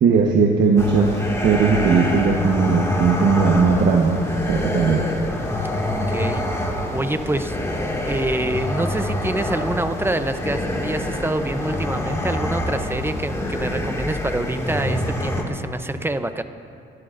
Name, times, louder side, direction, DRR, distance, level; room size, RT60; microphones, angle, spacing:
voice 1, 0.0-4.2 4.5-5.0, right 5 dB, 60° right, -1 dB, 1.3 m, -18 dB
sound 1, 0.8-15.4, left 1 dB, 15° left, 2.1 m, -26 dB
voice 2, 5.8-6.4 6.9-7.6 8.1-16.4, right 1 dB, 10° right, 9 dB, 0.7 m, -26 dB
27.0 x 12.5 x 2.6 m, 2.5 s
cardioid pair, 90°, 20 cm